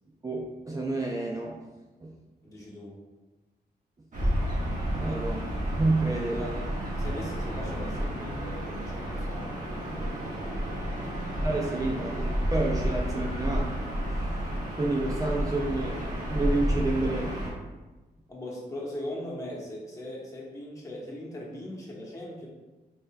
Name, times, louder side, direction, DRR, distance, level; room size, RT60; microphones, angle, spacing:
voice 1, 0.2-1.5 2.0-2.1 4.9-5.5 5.8-6.5 11.4-13.7 14.8-16.0 16.3-17.3, right 2 dB, 20° right, -2 dB, 0.5 m, -29 dB
voice 2, 2.4-3.0 6.1-6.6 7.0-11.4 18.3-22.5, left 1 dB, 20° left, -5 dB, 1.2 m, -40 dB
Gull seagull / Ocean, 4.1-17.5, equal, 50° right, 1.4 m, -31 dB
5.3 x 3.9 x 2.4 m, 1.2 s
wide cardioid pair, 110°, 17 cm